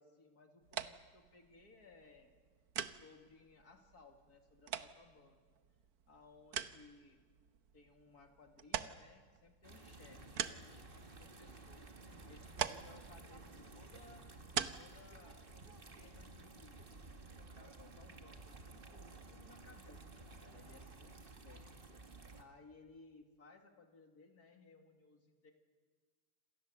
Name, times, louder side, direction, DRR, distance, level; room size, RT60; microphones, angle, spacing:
voice 1, 0.0-2.3 2.9-5.4 6.1-7.2 7.7-11.9 12.3-14.3 14.8-16.8 17.5-21.7 22.4-25.5, left 3 dB, 75° left, 4 dB, 2.8 m, -62 dB
sound 1, 0.6-16.3, right 8 dB, 70° right, 1.4 m, -46 dB
sound 2, 9.6-22.4, right 2 dB, 35° right, 2.0 m, -54 dB
28.0 x 26.0 x 7.6 m, 1.5 s
omnidirectional pair, 1.7 m